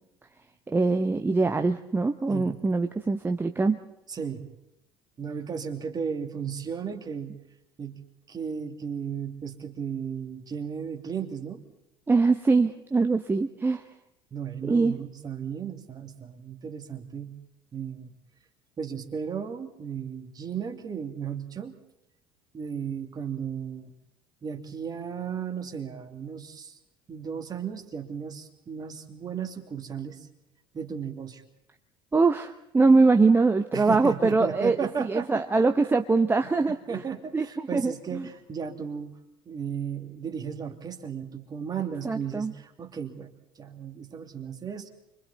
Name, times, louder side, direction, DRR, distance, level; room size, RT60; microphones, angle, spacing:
voice 1, 0.7-3.8 12.1-13.8 14.6-15.0 32.1-37.0 37.3-38.3 42.0-42.5, right 3 dB, 15° right, 6 dB, 1.1 m, -23 dB
voice 2, 4.1-4.5 5.2-7.3 7.8-8.0 8.3-11.6 14.3-17.3 17.7-18.1 18.8-21.8 22.5-23.9 24.4-26.8 27.1-30.3 30.7-31.4 33.7-35.7 36.7-39.2 39.4-44.9, right 7 dB, 35° right, 5 dB, 2.7 m, -35 dB
29.5 x 24.5 x 4.2 m, 0.85 s
figure-of-eight pair, 60°, 12 cm